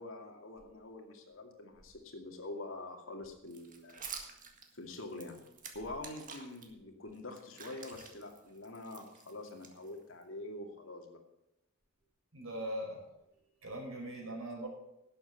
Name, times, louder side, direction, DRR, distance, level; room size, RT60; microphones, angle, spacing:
voice 1, 0.0-4.1 4.8-5.4 5.7-11.2, left 2 dB, 75° left, 3 dB, 2.4 m, -45 dB
sound 1, 3.5-6.7 7.1-10.2, right 6 dB, 40° right, 1.8 m, -49 dB
voice 2, 12.3-13.0 13.6-14.7, right 1 dB, 80° right, -1 dB, 5.1 m, -40 dB
11.5 x 7.7 x 8.3 m, 0.88 s
head